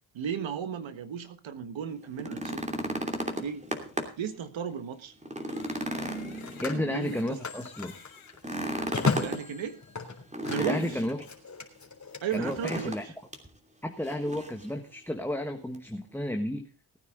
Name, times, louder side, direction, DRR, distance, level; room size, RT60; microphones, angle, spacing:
voice 1, 0.1-2.6 3.3-3.7 4.2-5.1 6.7-7.4 9.2-9.8 10.5-11.0 12.2-13.1, right 7 dB, 70° right, 11 dB, 1.6 m, -35 dB
sound 1, 2.0-4.3 4.7-4.8 5.2-7.1 8.3-9.4 10.3-11.2 12.4-13.0 13.3-13.5 14.0-14.6 15.7-15.8, right 1 dB, 15° right, 2.9 m, -34 dB
Telephone, 3.8-4.1 6.0-10.9 11.2-12.7, left 4 dB, 35° left, 3.2 m, -35 dB
Crying sobbing, 5.2-8.4 9.1-9.2 10.5-11.3, left 8 dB, 80° left, 3.0 m, -54 dB
voice 2, 6.6-8.0 10.6-11.3 12.3-13.0 13.8-16.7, left 1 dB, 5° left, 4 dB, 1.4 m, -32 dB
19.5 x 9.5 x 3.8 m, 0.35 s
cardioid pair, 75°, 47 cm